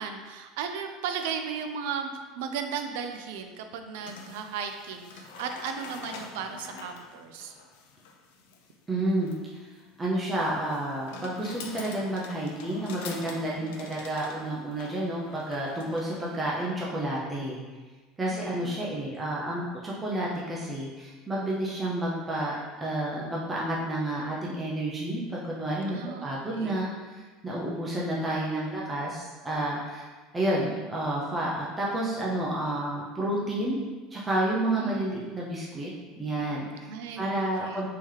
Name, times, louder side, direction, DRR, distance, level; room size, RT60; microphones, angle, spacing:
voice 1, 0.0-2.1 2.4-7.6 13.6-13.9 18.2-18.9 25.8-26.9 27.6-27.8 34.7-35.0 36.9-37.8, right 6 dB, 80° right, 6 dB, 0.3 m, -36 dB
sound 1, 4.0-16.4, left 4 dB, 85° left, 0.4 m, -45 dB
voice 2, 8.9-9.3 9.6-9.7 10.0-17.6 18.2-30.0 30.3-33.8 34.1-35.9 36.2-36.9 37.2-37.9, right 1 dB, 10° right, -5 dB, 0.4 m, -30 dB
3.7 x 2.8 x 3.1 m, 1.3 s
cardioid pair, 165°, 0 cm